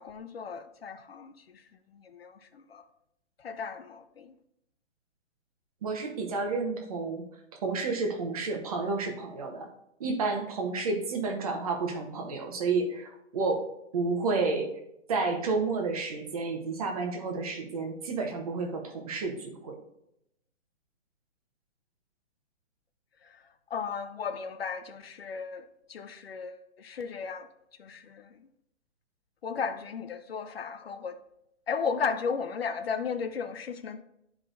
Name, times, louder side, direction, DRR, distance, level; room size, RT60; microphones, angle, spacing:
voice 1, 0.0-1.6 1.9-2.9 3.4-4.3 23.2-23.4 23.7-27.5 27.8-28.4 29.4-31.2 31.7-34.0, left 6 dB, 55° left, 0.6 m, -35 dB
voice 2, 5.8-7.2 7.6-9.7 10.0-13.7 13.9-14.7 15.1-19.8, right 3 dB, 30° right, 1.0 m, -30 dB
11.0 x 4.8 x 2.5 m
hypercardioid pair, 165°, 37 cm